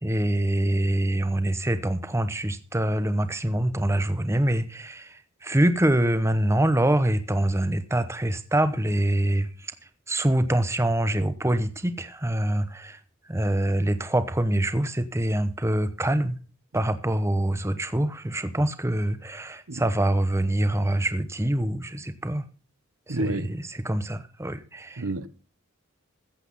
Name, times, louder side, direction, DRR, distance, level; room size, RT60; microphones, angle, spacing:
voice 1, 0.0-9.5 10.1-13.0 13.3-16.4 16.7-22.4 23.1-25.0, right 1 dB, 15° right, 0.9 m, -25 dB
voice 2, 23.1-23.5 25.0-25.3, right 2 dB, 90° right, 1.0 m, -29 dB
14.5 x 8.3 x 5.4 m
head